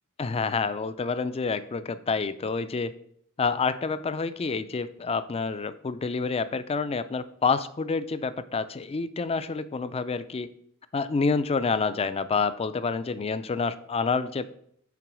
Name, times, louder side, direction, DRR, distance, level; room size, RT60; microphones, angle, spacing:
voice 1, 0.2-2.9 3.4-10.5 10.9-14.4, left 4 dB, 25° left, 13 dB, 0.4 m, -28 dB
5.9 x 4.6 x 6.1 m, 0.68 s
head